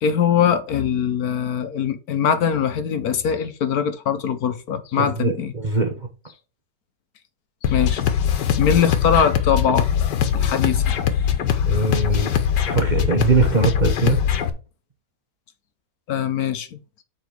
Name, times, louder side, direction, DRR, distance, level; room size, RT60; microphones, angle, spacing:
voice 1, 0.0-5.5 7.7-8.0 8.6-9.9 10.3-10.8 16.1-16.8, left 7 dB, 65° left, 1.2 m, -22 dB
voice 2, 5.0-6.1 11.7-12.3 12.7-14.2, right 3 dB, 35° right, 0.9 m, -21 dB
sound 1, 7.6-14.5, left 9 dB, 90° left, 1.6 m, -21 dB
7.0 x 5.1 x 4.5 m
omnidirectional pair, 1.8 m